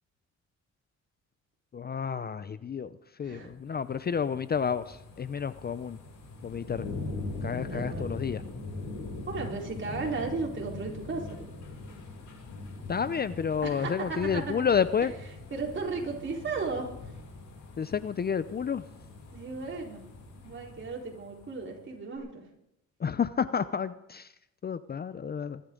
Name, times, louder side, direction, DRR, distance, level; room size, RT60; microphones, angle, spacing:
voice 1, 1.7-6.0 6.4-6.9 7.4-8.4 12.9-15.1 17.8-18.8 23.0-24.3 24.6-25.6, left 7 dB, 35° left, 14 dB, 0.6 m, -30 dB
sound 1, 3.6-21.7 22.2-22.3, left 2 dB, 75° left, 6.2 m, -42 dB
voice 2, 7.5-8.1 9.3-11.3 13.6-14.4 15.5-17.1 19.3-20.0 20.4-22.4, right 4 dB, 40° right, -1 dB, 4.2 m, -35 dB
24.5 x 12.5 x 3.9 m, 0.82 s
cardioid pair, 90°, 30 cm